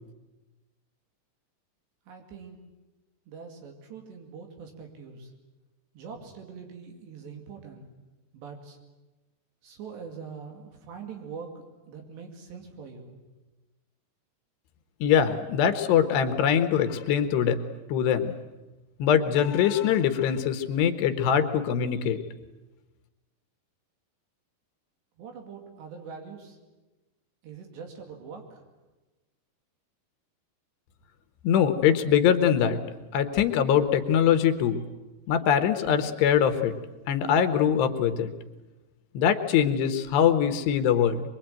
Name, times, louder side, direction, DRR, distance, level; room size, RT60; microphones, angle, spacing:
voice 1, 2.1-2.6 3.3-5.3 5.9-7.9 8.3-8.8 9.6-13.2 25.2-26.6 27.4-28.6, right 5 dB, 75° right, 3 dB, 4.5 m, -43 dB
voice 2, 15.0-17.6 17.9-18.3 19.0-22.2 31.4-32.8 33.1-34.8 35.3-36.7 37.1-38.3 39.1-41.2, left 8 dB, 75° left, 8 dB, 3.2 m, -23 dB
23.5 x 23.5 x 9.0 m, 1.1 s
omnidirectional pair, 5.1 m